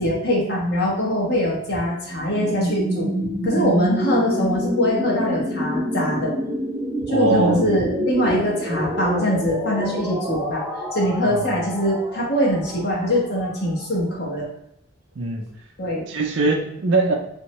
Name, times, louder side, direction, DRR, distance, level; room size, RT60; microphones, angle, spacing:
voice 1, 0.0-3.1 3.4-6.3 7.1-10.6 10.9-14.5 15.8-16.0, equal, 50° left, -4 dB, 1.0 m, -22 dB
sound 1, 2.1-13.9, equal, 10° right, 0.6 m, -27 dB
voice 2, 7.1-7.6 11.3-11.4 15.2-15.4 16.1-17.1, right 3 dB, 60° right, 2 dB, 0.5 m, -21 dB
3.5 x 2.1 x 3.0 m, 0.76 s
head